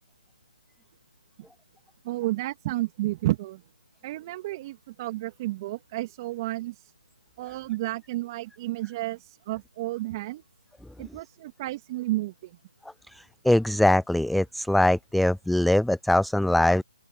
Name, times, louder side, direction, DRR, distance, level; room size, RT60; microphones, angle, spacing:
voice 1, 2.0-3.6 4.0-6.9 7.4-10.4 11.0-12.6, right 17 dB, 30° right, 3.0 m, -31 dB
voice 2, 13.4-16.8, left 1 dB, ahead, 0.3 m, -22 dB
hypercardioid pair, 155°, 5 cm